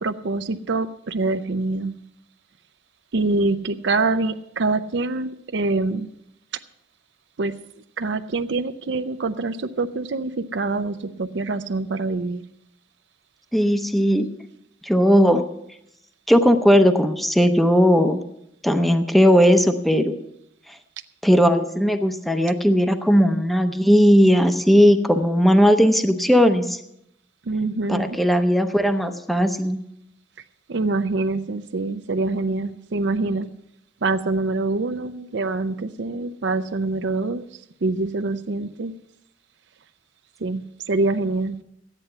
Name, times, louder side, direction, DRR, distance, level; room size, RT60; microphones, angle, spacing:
voice 1, 0.0-1.9 3.1-6.1 7.4-7.6 8.0-12.4 27.5-28.2 30.7-33.5 34.0-37.5 37.8-38.9 40.4-41.6, right 3 dB, 75° right, 9 dB, 0.6 m, -25 dB
voice 2, 13.5-14.3 14.8-15.4 16.3-18.2 18.6-20.1 21.2-26.8 27.9-29.8, equal, ahead, 7 dB, 0.6 m, -17 dB
13.5 x 9.8 x 5.6 m, 0.78 s
head